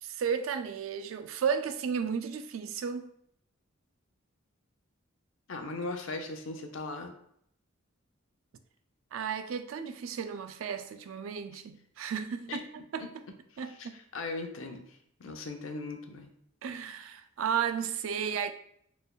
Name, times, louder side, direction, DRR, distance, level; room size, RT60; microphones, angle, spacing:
voice 1, 0.0-3.1 9.1-12.6 12.9-13.0 13.6-14.0 16.6-18.5, right 7 dB, 80° right, 0.4 m, -33 dB
voice 2, 5.5-7.1 12.5-12.6 13.0-13.1 13.5-16.3, left 3 dB, 75° left, 0.6 m, -39 dB
4.5 x 3.3 x 2.3 m
head